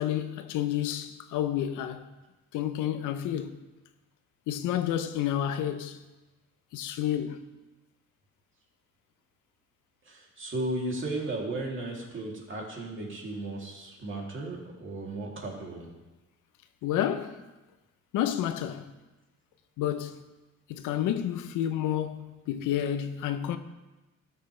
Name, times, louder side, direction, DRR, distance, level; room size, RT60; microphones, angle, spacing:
voice 1, 0.0-2.1 2.5-3.6 4.5-6.0 6.7-7.4 16.8-17.4 18.1-18.9 19.8-20.2 20.7-23.6, left 11 dB, 85° left, 0.7 m, -30 dB
voice 2, 10.0-15.9, right 2 dB, 40° right, 2.7 m, -35 dB
13.5 x 6.6 x 3.2 m
cardioid pair, 90°, 30 cm